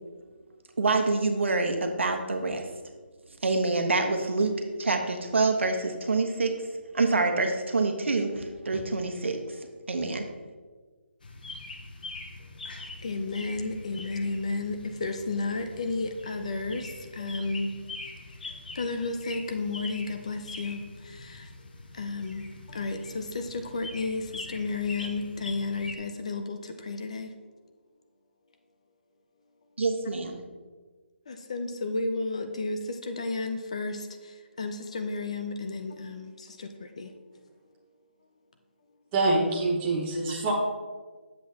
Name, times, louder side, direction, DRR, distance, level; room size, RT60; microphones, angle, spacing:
voice 1, 0.8-2.6 3.4-6.6 6.9-9.4 9.9-10.3 29.8-30.4, right 3 dB, 85° right, 4 dB, 1.1 m, -26 dB
sound 1, 11.2-26.0, left 2 dB, 50° left, 0.9 m, -43 dB
voice 2, 13.0-18.0 18.7-21.5 21.9-27.3 31.3-37.1, left 3 dB, 30° left, 6 dB, 0.5 m, -33 dB
voice 3, 39.1-40.5, right 2 dB, 15° right, -3 dB, 0.9 m, -25 dB
8.3 x 7.5 x 2.8 m, 1.4 s
hypercardioid pair, 175°, 6 cm